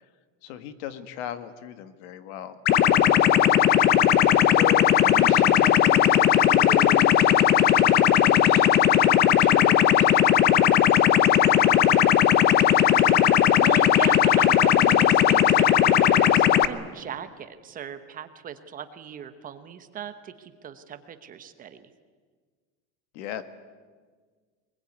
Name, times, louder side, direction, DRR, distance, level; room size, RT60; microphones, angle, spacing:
voice 1, 0.4-2.6 4.5-11.9 23.1-23.4, left 10 dB, 65° left, 11 dB, 1.8 m, -38 dB
sound 1, 2.7-16.7, left 10 dB, 25° left, 0.6 m, -18 dB
voice 2, 12.9-21.9, right 8 dB, 20° right, 10 dB, 1.0 m, -38 dB
23.0 x 21.0 x 9.5 m, 1.5 s
supercardioid pair, 170°, 37 cm